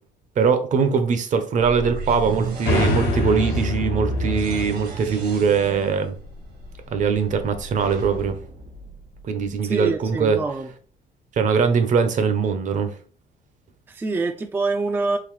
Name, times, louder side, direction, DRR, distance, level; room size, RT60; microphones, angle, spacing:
voice 1, 0.4-6.2 6.9-8.4 9.2-10.4 11.4-12.9, right 6 dB, 45° right, 0.6 m, -21 dB
sound 1, 1.6-9.5, right 1 dB, 75° right, 1.5 m, -32 dB
sound 2, 2.7-6.3, left 1 dB, 80° left, 1.0 m, -26 dB
voice 2, 9.7-10.7 13.9-15.2, right 3 dB, 15° right, 0.3 m, -25 dB
3.8 x 2.6 x 3.0 m
cardioid pair, 110°, 17 cm